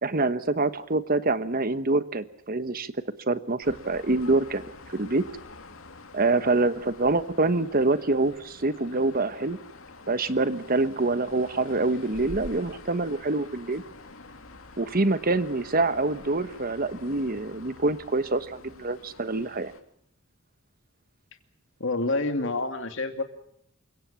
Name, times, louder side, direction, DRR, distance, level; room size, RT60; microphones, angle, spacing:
voice 1, 0.0-2.9 3.3-4.6 4.9-5.2 6.1-9.6 10.1-13.8 14.8-19.7, right 2 dB, 45° right, 13 dB, 1.2 m, -25 dB
sound 1, 3.6-19.8, left 3 dB, 85° left, 2.6 m, -47 dB
voice 2, 21.8-23.2, left 2 dB, 65° left, 7 dB, 2.6 m, -27 dB
28.5 x 17.0 x 7.3 m, 0.73 s
head